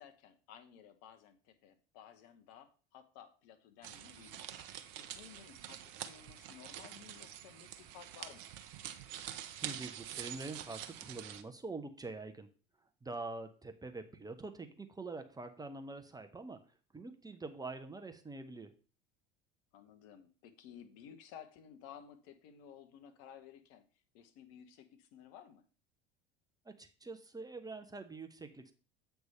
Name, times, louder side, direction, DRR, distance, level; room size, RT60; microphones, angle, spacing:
voice 1, 0.0-4.4 5.0-8.5 19.7-23.8 24.1-25.6, left 9 dB, 55° left, 9 dB, 1.1 m, -55 dB
sound 1, 3.8-11.4, right 11 dB, 55° right, 0.8 m, -46 dB
voice 2, 9.6-12.5 13.0-18.7 26.6-28.7, right 3 dB, 15° right, 7 dB, 0.8 m, -45 dB
7.9 x 3.4 x 5.5 m, 0.38 s
figure-of-eight pair, 70°, 30 cm